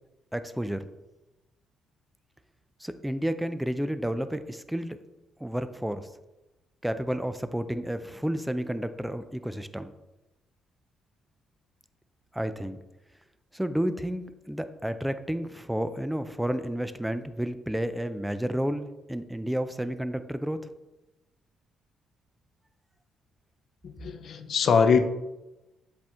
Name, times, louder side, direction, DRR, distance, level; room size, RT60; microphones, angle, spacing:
voice 1, 0.3-0.9 2.8-5.0 5.4-6.1 6.8-9.9 12.3-12.8 13.5-20.6, equal, 5° right, 11 dB, 0.5 m, -31 dB
voice 2, 23.8-25.1, left 5 dB, 60° left, 9 dB, 0.6 m, -23 dB
7.6 x 4.3 x 3.6 m, 1.0 s
cardioid pair, 90°, 0 cm